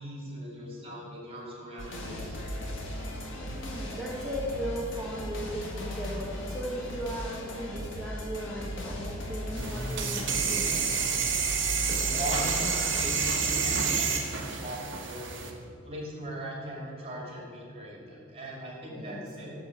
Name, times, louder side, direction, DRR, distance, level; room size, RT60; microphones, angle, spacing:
voice 1, 0.0-2.4 12.0-12.5 12.9-15.5 15.8-19.6, right 1 dB, 30° right, -3 dB, 2.3 m, -39 dB
sound 1, 1.8-13.8, equal, 65° left, 1.9 m, -37 dB
voice 2, 3.6-10.9 12.0-12.2 18.9-19.4, equal, ahead, -7 dB, 1.1 m, -37 dB
sound 2, 9.6-15.5, right 6 dB, 60° right, 1.1 m, -29 dB
12.0 x 4.1 x 7.4 m, 2.4 s
head